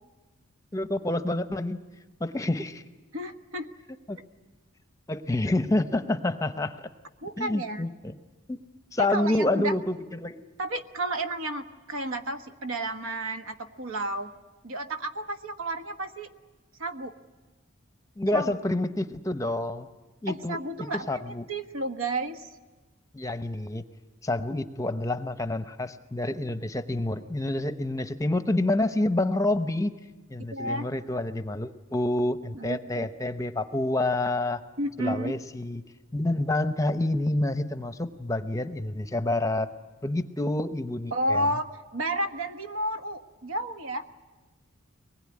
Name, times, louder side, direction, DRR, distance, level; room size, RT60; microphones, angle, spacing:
voice 1, 0.7-1.8 2.2-2.8 4.1-4.2 5.1-6.9 7.4-8.1 8.5-8.6 8.9-10.4 18.2-19.9 20.2-21.4 23.1-23.8 24.2-29.9 30.3-34.6 35.0-35.8 36.1-39.7 40.0-41.5, left 1 dB, 15° left, 10 dB, 0.8 m, -28 dB
voice 2, 3.1-3.7 7.2-7.9 9.0-9.7 10.6-14.3 14.6-16.3 16.8-17.1 18.3-18.6 20.3-22.5 30.5-30.9 32.5-33.1 34.8-35.3 41.1-44.1, right 1 dB, 70° right, 7 dB, 1.3 m, -32 dB
23.5 x 20.0 x 9.7 m, 1.2 s
head